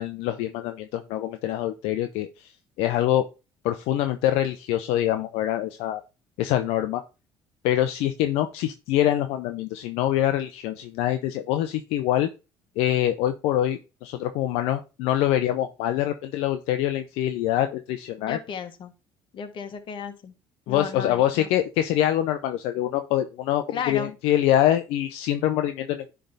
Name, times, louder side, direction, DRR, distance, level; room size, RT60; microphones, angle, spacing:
voice 1, 0.0-2.5 2.8-3.2 3.6-6.0 6.4-7.0 7.6-12.3 12.8-18.4 20.7-26.1, left 12 dB, 80° left, 8 dB, 0.6 m, -25 dB
voice 2, 18.3-18.9 19.3-20.3 20.7-21.5 23.7-24.2, left 7 dB, 55° left, 8 dB, 1.3 m, -34 dB
10.0 x 3.4 x 3.9 m, 0.30 s
supercardioid pair, 70°, 10 cm